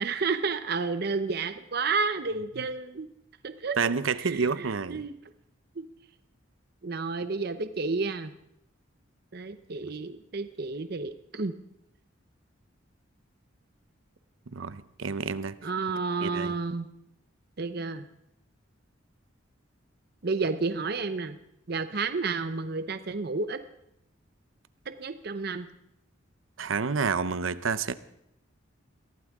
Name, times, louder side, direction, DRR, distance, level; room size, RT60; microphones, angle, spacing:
voice 1, 0.0-3.1 3.4-3.8 4.2-5.1 5.8-5.9 6.8-8.3 9.3-11.5 15.6-16.9 17.6-18.1 20.2-21.3 21.7-23.6 24.9-25.7, right 4 dB, 50° right, 10 dB, 0.7 m, -31 dB
voice 2, 3.8-5.0 14.5-15.5 16.2-16.5 26.6-27.9, right 5 dB, 85° right, 15 dB, 0.7 m, -29 dB
23.0 x 15.5 x 3.6 m, 0.78 s
head